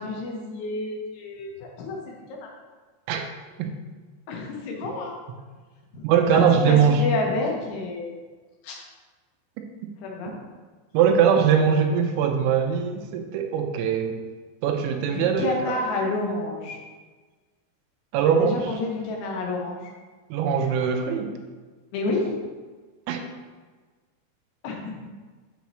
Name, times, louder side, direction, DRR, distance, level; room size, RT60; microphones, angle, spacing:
voice 1, 0.0-2.5 4.3-5.1 5.9-6.0 6.3-8.2 8.6-8.8 10.0-10.4 15.1-16.8 18.4-19.8 21.9-22.4 24.6-25.0, left 2 dB, 75° left, 0 dB, 2.9 m, -29 dB
voice 2, 6.0-7.0 10.9-14.2 14.6-15.8 18.1-18.6 20.3-21.3 23.1-23.2, right 7 dB, 90° right, 4 dB, 3.1 m, -21 dB
7.3 x 6.8 x 3.1 m, 1.4 s
omnidirectional pair, 5.2 m